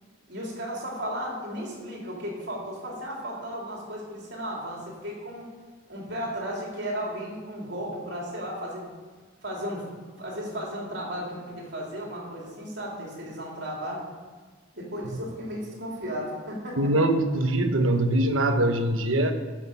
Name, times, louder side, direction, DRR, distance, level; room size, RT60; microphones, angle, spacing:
voice 1, 0.3-5.5 5.9-8.8 9.4-9.9 10.2-14.1 14.8-16.9, equal, 55° right, -3 dB, 3.9 m, -34 dB
voice 2, 16.8-19.3, right 1 dB, 80° right, 7 dB, 1.2 m, -23 dB
14.5 x 6.5 x 6.9 m, 1.4 s
head